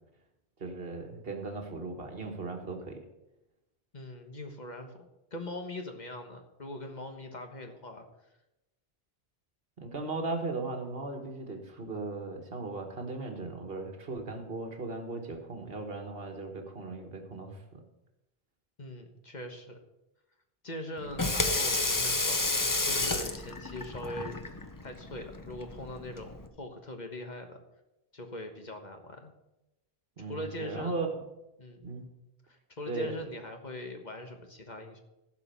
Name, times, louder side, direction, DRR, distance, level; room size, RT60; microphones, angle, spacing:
voice 1, 0.6-3.0 9.8-17.8 30.2-31.3 31.8-32.1 32.9-33.2, right 3 dB, 65° right, 4 dB, 1.8 m, -37 dB
voice 2, 3.9-5.0 5.3-8.1 18.8-19.8 20.6-24.4 24.8-27.6 28.1-29.3 30.3-31.0 31.6-31.8 32.5-35.0, left 1 dB, 45° left, 4 dB, 1.4 m, -41 dB
Water tap faucet / Sink (filling or washing), 21.0-26.5, left 2 dB, 20° left, 0.8 m, -31 dB
15.5 x 5.4 x 6.9 m, 0.93 s
omnidirectional pair, 1.1 m